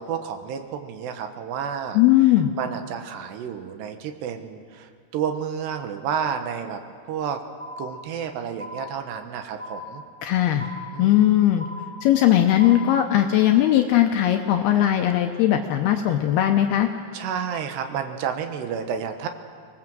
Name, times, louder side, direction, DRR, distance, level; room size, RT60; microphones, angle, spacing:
voice 1, 0.0-6.8 7.1-7.4 7.8-10.0 10.9-11.4 17.1-19.3, right 7 dB, 75° right, 6 dB, 3.3 m, -31 dB
voice 2, 1.9-2.5 10.2-10.6 11.0-11.7 12.0-16.9, left 12 dB, 80° left, 4 dB, 2.6 m, -19 dB
sound 1, 7.6-8.3 8.6-9.3 9.6-10.3 10.6-11.3 11.6-12.3 12.6-13.3, left 2 dB, 5° left, 3.4 m, -39 dB
24.5 x 20.0 x 7.7 m, 2.1 s
omnidirectional pair, 5.1 m